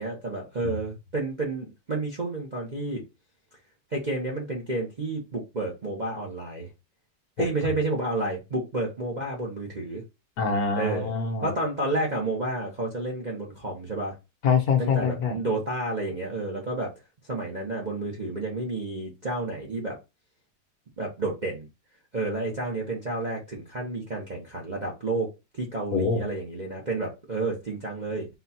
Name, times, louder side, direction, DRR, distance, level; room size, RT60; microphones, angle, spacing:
voice 1, 0.0-3.0 3.9-6.7 7.4-10.0 10.8-11.1 11.4-14.2 14.8-16.9 17.2-20.0 21.0-21.7 22.1-28.3, right 2 dB, 35° right, 0.7 m, -30 dB
voice 2, 10.4-11.5 14.4-15.4 25.9-26.2, left 5 dB, 60° left, 1.3 m, -24 dB
4.2 x 2.3 x 4.1 m
omnidirectional pair, 1.9 m